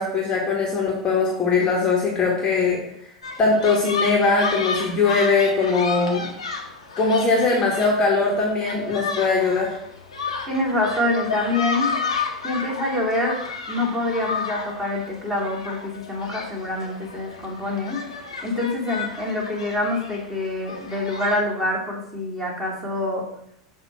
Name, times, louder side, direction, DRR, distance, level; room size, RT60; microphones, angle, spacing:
voice 1, 0.0-2.8 3.4-6.3 7.0-9.7, left 4 dB, 25° left, -3 dB, 1.5 m, -21 dB
sound 1, 3.2-21.4, left 4 dB, 70° left, 1.1 m, -32 dB
voice 2, 10.5-11.9 12.4-13.4 13.7-18.0 18.4-23.2, left 2 dB, 10° right, -5 dB, 2.6 m, -25 dB
7.1 x 2.9 x 5.9 m, 0.72 s
figure-of-eight pair, 85°, 3 cm